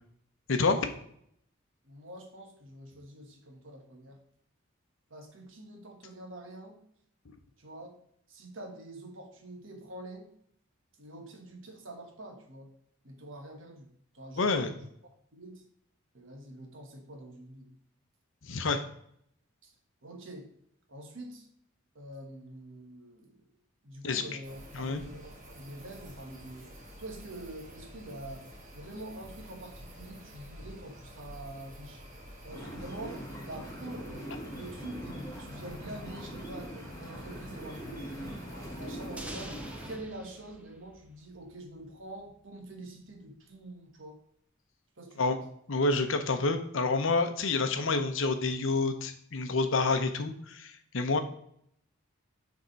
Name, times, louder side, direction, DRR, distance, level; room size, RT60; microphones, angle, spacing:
voice 1, 1.8-4.2 5.1-6.8 7.6-8.0 8.3-10.3 11.0-12.7 13.0-13.9 14.1-14.9 15.3-15.6 16.1-17.7 19.6-19.7 20.0-20.5 20.9-21.5 21.9-23.4 23.8-26.7 27.0-28.5 28.7-32.0 32.4-38.5 38.8-44.2 45.0-45.4, right 1 dB, 65° right, 3 dB, 1.2 m, -46 dB
voice 2, 14.4-14.7 18.4-18.8 24.0-24.2 24.7-25.0 45.2-45.4 45.7-51.2, left 3 dB, 65° left, 7 dB, 0.7 m, -28 dB
sound 1, 24.4-39.9, equal, 35° right, 1.4 m, -49 dB
sound 2, 32.5-40.0, equal, 15° left, 1.4 m, -42 dB
sound 3, 39.2-41.9, right 1 dB, 5° right, 0.5 m, -47 dB
6.6 x 3.6 x 4.4 m, 0.69 s
head